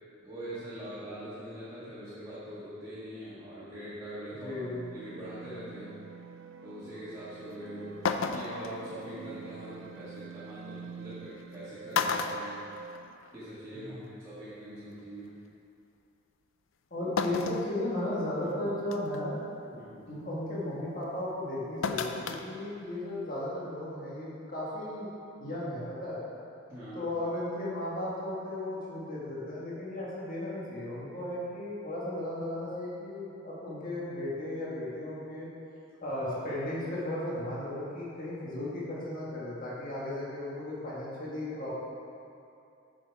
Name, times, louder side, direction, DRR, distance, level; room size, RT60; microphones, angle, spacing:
voice 1, 0.2-4.5 4.9-5.9 6.6-12.6 13.3-15.3 17.0-17.1 18.4-18.5 19.7-20.0 26.7-27.0, right 1 dB, 15° right, -13 dB, 1.9 m, -43 dB
voice 2, 4.3-4.8 13.7-14.1 16.9-19.4 20.1-25.1 25.4-26.2 26.9-35.5 36.0-41.7, left 1 dB, 45° left, -7 dB, 1.8 m, -35 dB
sound 1, 4.5-13.2, right 6 dB, 70° right, 0.4 m, -47 dB
sound 2, 7.5-7.6 8.0-8.7 10.3-10.4 11.4-11.6 11.9-13.3 13.7-13.8 15.0-15.1 17.2-17.7 18.2-18.3 18.9-19.2 21.8-22.4 22.8-22.9, left 5 dB, 90° left, 0.5 m, -31 dB
7.7 x 6.7 x 4.7 m, 2.6 s
head